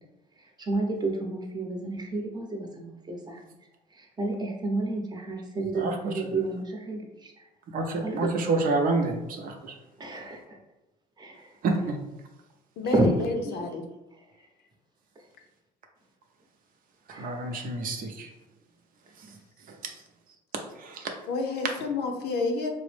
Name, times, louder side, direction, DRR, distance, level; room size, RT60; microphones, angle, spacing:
voice 1, 0.4-3.4 3.9-7.5 8.0-8.3 10.0-10.6 11.2-11.5 12.8-13.1 13.4-13.6 14.2-14.3 15.2-15.3 17.1-17.6, right 2 dB, 25° right, 1 dB, 0.8 m, -31 dB
voice 2, 7.7-9.7 11.6-12.0 17.2-18.3 19.8-19.9 20.8-21.1, right 3 dB, 55° right, 3 dB, 0.6 m, -28 dB
voice 3, 12.8-13.9 21.3-22.7, left 3 dB, 75° left, 4 dB, 0.6 m, -29 dB
4.1 x 2.0 x 3.2 m, 0.95 s
cardioid pair, 110°, 17 cm